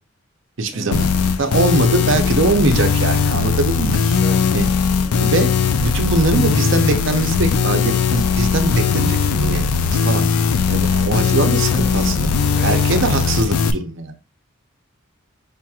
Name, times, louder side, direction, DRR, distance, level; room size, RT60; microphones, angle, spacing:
voice 1, 0.6-1.1 1.4-4.0 4.5-4.7 5.2-5.5 5.8-10.3 10.7-12.3 12.6-14.2, right 2 dB, 55° right, 6 dB, 0.6 m, -21 dB
sound 1, 0.9-13.7, left 6 dB, 90° left, 0.4 m, -18 dB
voice 2, 4.0-4.6 5.0-5.2 11.7-13.1, right 1 dB, 5° right, 0 dB, 0.4 m, -35 dB
5.0 x 2.9 x 2.3 m, 0.29 s
head